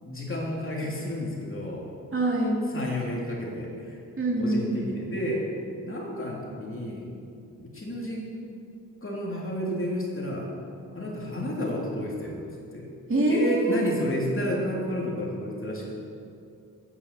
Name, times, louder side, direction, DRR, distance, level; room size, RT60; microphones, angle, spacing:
voice 1, 0.0-1.9 2.7-4.0 4.4-5.5 5.8-7.1 7.6-8.3 9.0-10.5 10.9-12.4 12.7-12.9 13.3-16.0, equal, 35° left, -3 dB, 3.2 m, -31 dB
voice 2, 2.1-2.6 4.2-5.0 13.1-13.8, right 1 dB, 35° right, -2 dB, 2.6 m, -25 dB
9.7 x 8.4 x 6.9 m, 2.5 s
cardioid pair, 45°, 35 cm